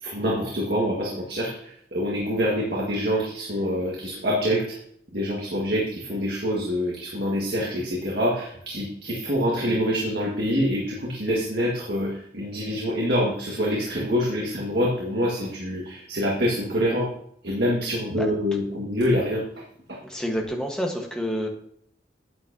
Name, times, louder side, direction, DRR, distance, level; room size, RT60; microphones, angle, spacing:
voice 1, 0.0-4.7 5.1-17.1 17.4-19.5 19.9-20.0, equal, 70° right, -3 dB, 1.8 m, -26 dB
voice 2, 20.0-21.5, equal, 5° left, 0 dB, 1.3 m, -28 dB
9.6 x 8.7 x 2.8 m, 0.66 s
head